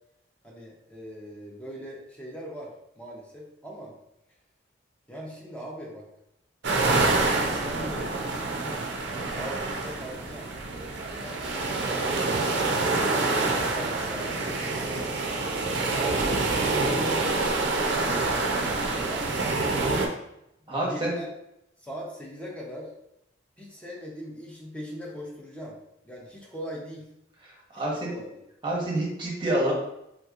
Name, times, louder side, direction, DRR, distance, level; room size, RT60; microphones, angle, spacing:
voice 1, 0.4-3.9 5.1-6.0 7.0-9.0 9.3-10.5 11.4-15.0 15.8-18.5 19.0-19.5 20.6-21.3 21.8-22.9 23.6-25.8 26.0-27.1 27.7-28.4, equal, 5° left, -3 dB, 0.7 m, -41 dB
sound 1, 6.6-20.1, right 3 dB, 60° right, 0.5 m, -27 dB
voice 2, 20.7-21.1 27.7-28.1 28.6-29.7, right 1 dB, 25° right, -4 dB, 0.9 m, -27 dB
3.4 x 2.9 x 2.4 m, 0.81 s
head